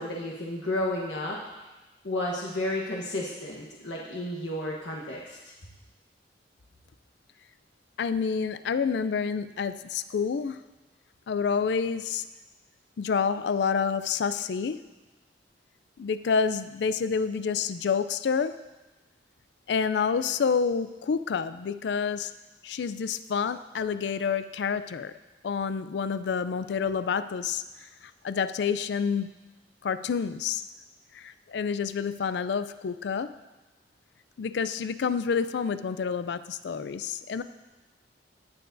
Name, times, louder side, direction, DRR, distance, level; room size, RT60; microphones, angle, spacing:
voice 1, 0.0-1.4 2.0-5.5, left 1 dB, 90° left, -3 dB, 1.2 m, -32 dB
voice 2, 8.0-10.6 11.3-12.2 13.0-14.8 16.0-18.6 19.7-22.3 22.6-25.1 25.4-29.3 29.8-30.6 31.1-33.3 34.4-37.4, left 6 dB, 70° left, 13 dB, 0.4 m, -28 dB
17.5 x 6.8 x 2.6 m, 1.1 s
head